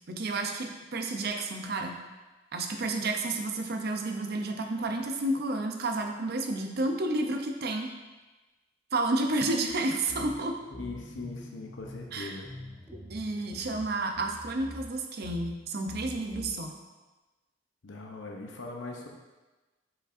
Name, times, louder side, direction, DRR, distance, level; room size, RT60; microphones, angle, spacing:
voice 1, 0.1-1.9 2.5-7.9 8.9-10.6 12.1-12.4 13.1-16.7, right 2 dB, 55° right, 3 dB, 0.6 m, -31 dB
sound 1, 9.7-9.8 10.1-14.9 15.2-15.6 15.9-16.5, equal, ahead, 0.7 m, -45 dB
voice 2, 10.7-12.4 17.8-19.1, left 3 dB, 85° left, 1 dB, 0.8 m, -40 dB
7.2 x 5.1 x 2.6 m, 1.2 s
head